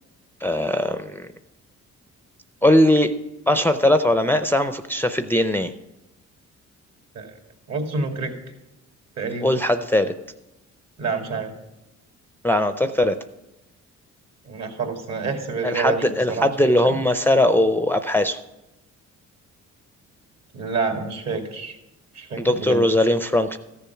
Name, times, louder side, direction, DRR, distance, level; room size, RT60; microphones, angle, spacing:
voice 1, 0.4-1.3 2.6-3.1 3.5-5.7 9.4-10.1 12.4-13.2 15.6-18.4 22.3-23.6, left 1 dB, 5° left, 9 dB, 0.5 m, -20 dB
voice 2, 7.7-8.3 9.2-9.5 11.0-11.5 14.4-16.9 20.5-21.8 22.1-22.8, right 4 dB, 60° right, 3 dB, 2.2 m, -28 dB
14.0 x 7.0 x 5.8 m, 0.95 s
cardioid pair, 90°, 30 cm